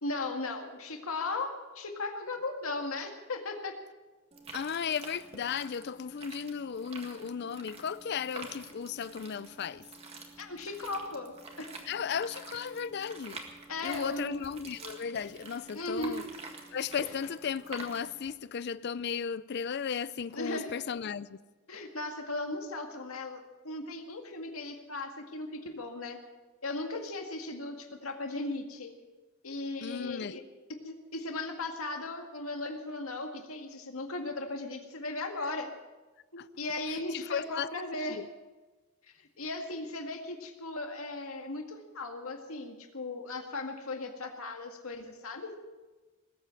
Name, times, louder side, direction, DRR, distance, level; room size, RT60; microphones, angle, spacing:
voice 1, 0.0-3.7 10.4-11.7 13.7-14.4 15.7-16.2 20.3-20.7 21.7-26.2 26.6-28.9 29.4-30.4 30.8-35.7 36.3-38.2 39.2-45.5, left 2 dB, 80° left, 2.0 m, -37 dB
sound 1, 4.3-18.3, right 3 dB, 30° right, 1.9 m, -48 dB
voice 2, 4.5-9.8 11.9-13.4 13.8-16.2 16.7-21.4 29.8-30.4 36.4-36.5 37.1-37.7 38.1-38.3, left 7 dB, 50° left, 0.4 m, -35 dB
19.5 x 8.4 x 7.6 m
head